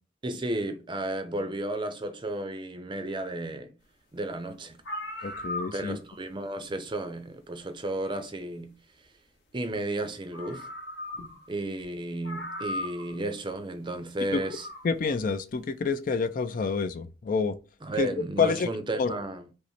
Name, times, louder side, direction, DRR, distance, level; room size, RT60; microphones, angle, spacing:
voice 1, 0.2-3.7 4.1-4.8 5.7-8.7 9.5-10.7 11.5-14.7 17.8-19.5, right 1 dB, 25° right, 0.5 m, -33 dB
sound 1, 4.4-4.5 4.7-6.1 7.5-7.6 9.9-10.0 10.3-11.5 11.8-11.9 12.2-13.2 14.3-14.9, left 1 dB, 70° left, 1.2 m, -37 dB
voice 2, 5.2-6.0 14.3-14.4 14.8-17.6 18.0-18.1 18.4-18.7 19.0-19.1, left 5 dB, 45° left, 0.4 m, -27 dB
5.5 x 2.1 x 4.2 m
head